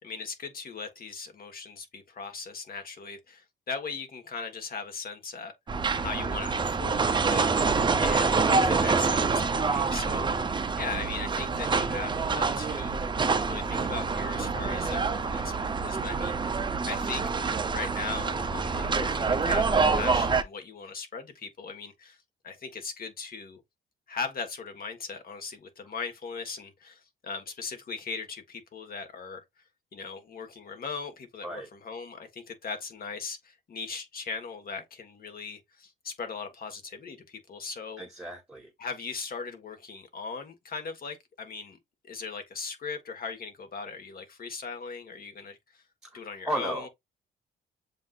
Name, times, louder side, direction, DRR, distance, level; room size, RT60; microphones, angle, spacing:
voice 1, 0.0-5.5 6.0-7.5 8.0-13.1 13.4-16.6 16.9-17.3 17.7-22.2 22.4-23.6 24.1-29.4 29.9-38.0 38.8-41.8 42.0-45.8 46.1-46.9, left 5 dB, 50° left, 1.4 m, -39 dB
sound 1, 5.7-20.4, right 4 dB, 25° right, 0.5 m, -26 dB
voice 2, 38.0-38.7 46.0-46.9, right 1 dB, 5° right, 0.9 m, -34 dB
7.3 x 2.6 x 2.4 m
cardioid pair, 90°, 20 cm